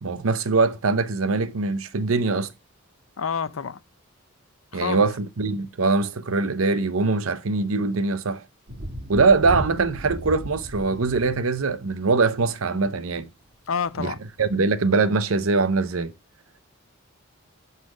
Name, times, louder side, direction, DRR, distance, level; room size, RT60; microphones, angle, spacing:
voice 1, 0.0-2.5 4.7-8.4 9.1-13.3 14.0-16.1, right 3 dB, 85° right, 0.8 m, -22 dB
voice 2, 3.2-3.8 4.7-5.0 13.7-14.2, left 6 dB, 75° left, 0.6 m, -28 dB
Thunder, 8.7-12.6 13.9-14.0, equal, 55° right, 1.4 m, -35 dB
11.0 x 4.1 x 5.1 m
head